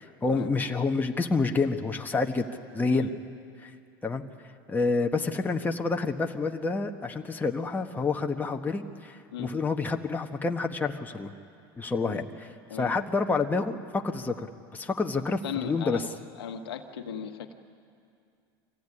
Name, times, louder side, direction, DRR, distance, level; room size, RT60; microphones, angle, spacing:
voice 1, 0.0-2.5 2.7-3.1 3.6-3.7 4.0-4.2 4.7-11.3 11.8-12.5 12.8-14.5 14.7-16.0, left 4 dB, 15° left, 3 dB, 1.3 m, -28 dB
voice 2, 15.4-16.1 16.4-17.5, left 8 dB, 85° left, 5 dB, 1.5 m, -36 dB
24.0 x 15.5 x 9.9 m, 2.4 s
hypercardioid pair, 95°, 13 cm